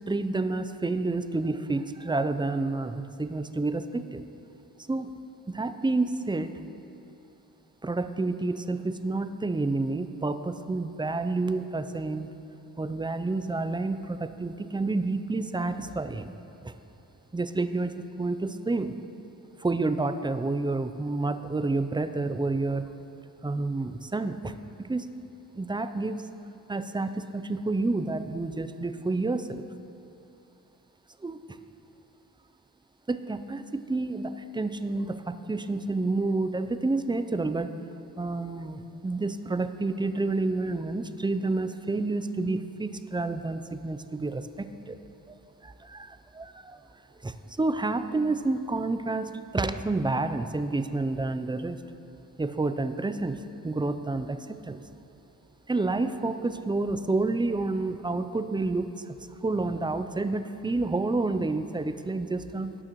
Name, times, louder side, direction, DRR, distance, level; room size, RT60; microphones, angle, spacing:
voice 1, 0.1-4.2 4.9-5.1 5.5-6.5 7.8-12.3 12.8-16.3 16.6-16.7 17.3-18.9 19.6-22.9 23.4-25.1 25.5-26.2 26.7-29.6 31.2-31.4 33.1-37.7 38.2-45.0 45.3-46.8 47.2-51.8 52.4-54.8 55.7-59.2 59.4-62.8, right 3 dB, 10° right, 10 dB, 0.4 m, -29 dB
18.0 x 6.2 x 3.0 m, 2.8 s
cardioid pair, 55°, 40 cm